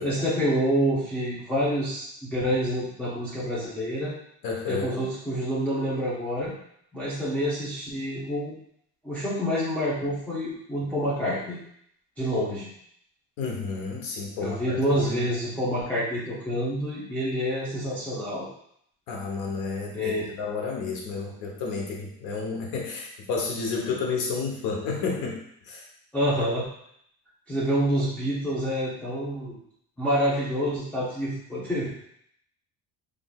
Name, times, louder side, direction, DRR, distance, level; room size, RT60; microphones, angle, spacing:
voice 1, 0.0-4.1 4.7-6.5 6.9-8.5 9.0-11.6 12.2-12.7 14.4-18.5 19.9-20.3 26.1-26.6 27.5-29.6 30.0-31.9, equal, 5° left, -11 dB, 0.7 m, -27 dB
voice 2, 4.4-5.0 13.4-14.8 15.0-15.2 19.1-25.4 25.7-25.8, left 4 dB, 85° left, -1 dB, 1.0 m, -31 dB
3.7 x 3.2 x 2.3 m, 0.70 s
cardioid pair, 165°, 32 cm